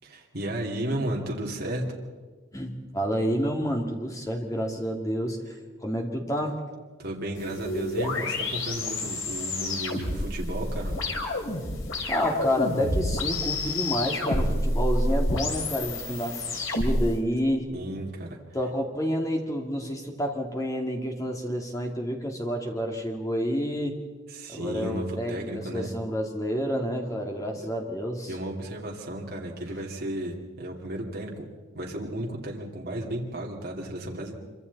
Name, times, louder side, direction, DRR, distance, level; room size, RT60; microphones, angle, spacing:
voice 1, 0.0-1.8 7.0-10.9 17.7-18.3 24.3-25.9 28.3-31.5 31.7-34.3, right 1 dB, 50° right, -2 dB, 2.6 m, -33 dB
voice 2, 2.5-5.4 5.8-6.6 12.1-17.7 18.5-23.9 24.5-28.3, equal, 15° left, 1 dB, 2.4 m, -29 dB
sound 1, 7.4-17.1, left 1 dB, 85° left, 3.7 m, -29 dB
26.0 x 24.5 x 4.1 m, 1.4 s
head